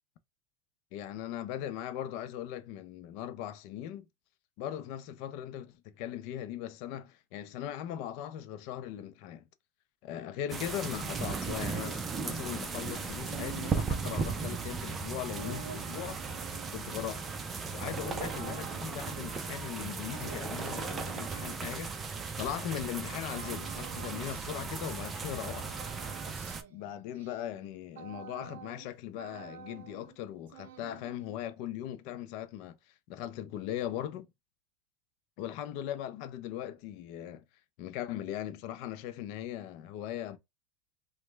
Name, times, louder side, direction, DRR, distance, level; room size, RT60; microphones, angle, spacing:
voice 1, 0.9-4.1 4.6-9.4 10.0-16.2 16.7-17.2 17.7-21.9 22.4-25.7 26.7-32.8 33.1-34.3 35.4-37.4 37.8-40.4, left 11 dB, 60° left, 0.5 m, -39 dB
sound 1, 10.5-26.6, right 5 dB, 20° right, 0.5 m, -36 dB
sound 2, 13.2-22.8 23.3-25.1 25.4-28.9 29.1-30.2 30.5-31.4, right 10 dB, 90° right, 0.5 m, -49 dB
2.9 x 2.2 x 3.2 m
supercardioid pair, 135°, 0 cm